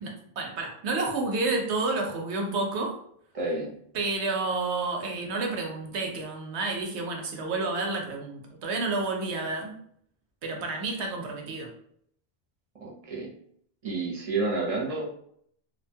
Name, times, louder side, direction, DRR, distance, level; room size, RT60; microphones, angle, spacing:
voice 1, 0.0-3.0 3.9-9.8 10.4-11.7, right 3 dB, 85° right, 2 dB, 0.9 m, -30 dB
voice 2, 3.3-3.7 12.8-13.3 13.8-15.1, right 3 dB, 40° right, -3 dB, 0.7 m, -30 dB
2.8 x 2.2 x 2.7 m, 0.66 s
omnidirectional pair, 1.1 m